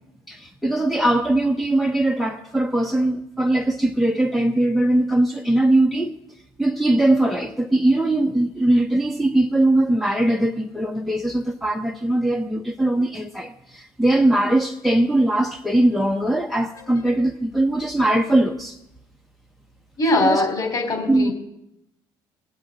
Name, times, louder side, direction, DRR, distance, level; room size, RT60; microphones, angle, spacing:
voice 1, 0.3-6.2 6.6-18.8 20.1-20.5 21.1-21.3, right 1 dB, ahead, 0.8 m, -20 dB
voice 2, 20.0-21.3, left 2 dB, 40° left, 3.9 m, -21 dB
19.0 x 8.4 x 3.9 m
hypercardioid pair, 60°, 11 cm